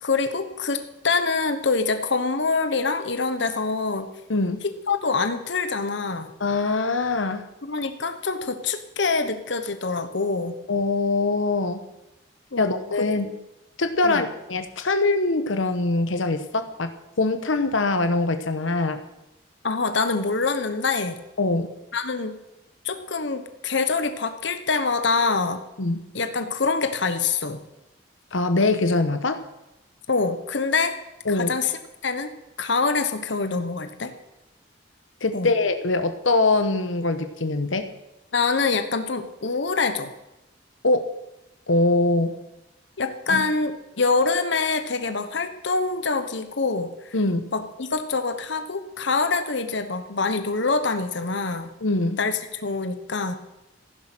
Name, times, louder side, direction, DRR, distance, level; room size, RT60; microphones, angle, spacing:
voice 1, 0.0-4.1 4.6-6.3 7.6-10.6 12.5-12.8 14.0-14.2 19.6-21.1 21.9-22.4 22.8-25.6 26.1-27.6 30.1-31.0 31.3-31.7 32.0-32.3 32.6-34.1 35.3-35.5 38.3-40.1 43.0-47.1 47.5-51.7 52.2-53.4, left 4 dB, 70° left, 9 dB, 1.1 m, -25 dB
voice 2, 6.4-7.4 10.7-11.8 12.6-13.3 13.8-16.9 17.2-19.0 21.4-21.7 25.8-26.0 28.3-29.4 31.3-31.6 35.2-37.9 40.8-41.1 41.7-42.4 43.3-43.4 47.1-47.4 51.8-52.2, left 2 dB, 85° left, 8 dB, 1.1 m, -23 dB
15.0 x 11.0 x 6.1 m, 0.93 s
head